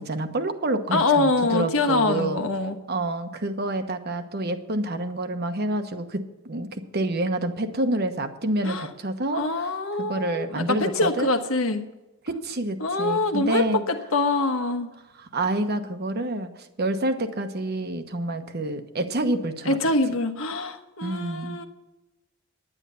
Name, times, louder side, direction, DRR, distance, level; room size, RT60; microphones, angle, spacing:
voice 1, 0.0-2.4 2.9-9.4 10.1-11.3 12.2-13.8 15.2-16.5 16.8-19.8 21.0-21.6, right 1 dB, 50° right, 8 dB, 1.1 m, -28 dB
voice 2, 0.9-2.8 8.6-8.9 9.3-11.8 12.8-14.9 19.7-21.7, left 2 dB, 80° left, 6 dB, 1.3 m, -24 dB
9.9 x 9.8 x 6.9 m, 1.0 s
head